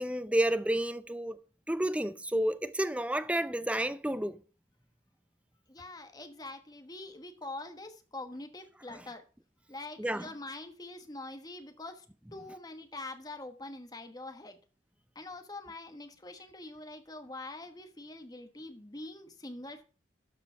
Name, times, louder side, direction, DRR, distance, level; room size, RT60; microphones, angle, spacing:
voice 1, 0.0-1.4 1.7-4.4 8.9-9.0 10.0-10.3, right 1 dB, 5° right, 0.5 m, -30 dB
voice 2, 5.7-9.2 9.7-12.0 12.3-14.6 15.1-19.8, left 2 dB, 20° left, 1.2 m, -44 dB
12.5 x 5.0 x 5.6 m
head